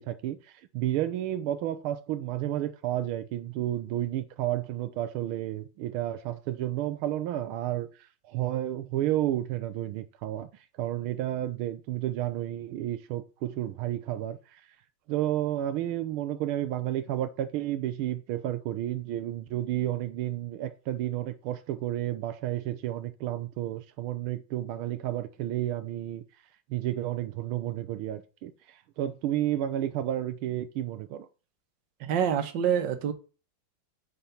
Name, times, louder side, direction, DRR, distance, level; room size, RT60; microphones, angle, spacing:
voice 1, 0.0-10.5 10.8-14.6 15.1-26.2 26.7-31.3, right 13 dB, 85° right, 1.6 m, -31 dB
voice 2, 32.0-33.1, right 8 dB, 65° right, 1.7 m, -26 dB
8.1 x 5.0 x 5.6 m
omnidirectional pair, 2.3 m